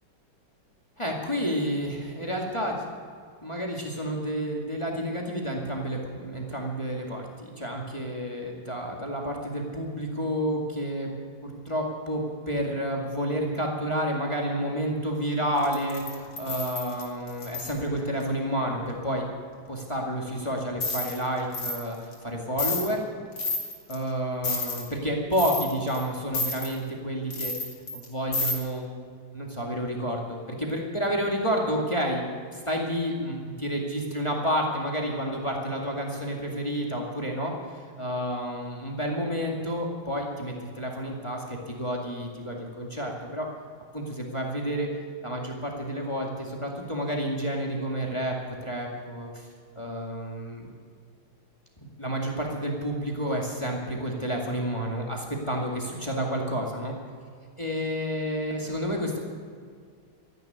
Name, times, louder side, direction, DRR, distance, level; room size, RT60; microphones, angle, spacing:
voice 1, 1.0-2.8 3.4-11.1 11.4-19.3 19.7-23.0 23.9-27.5 27.9-28.9 29.3-32.2 32.5-37.5 38.0-43.5 43.9-44.9 45.2-48.4 48.6-49.5 49.8-50.7 51.8-56.9 57.6-59.2, equal, 15° left, 0 dB, 2.0 m, -30 dB
sound 1, 15.6-17.7 20.8-21.2 21.5-21.8 22.1-22.2 22.6-22.9 23.4-24.0 24.4-24.9 25.3-26.0 26.3-26.7 27.3-28.0 28.3-28.5, left 3 dB, 85° left, 3.2 m, -30 dB
14.0 x 10.5 x 9.4 m, 2.1 s
omnidirectional pair, 2.4 m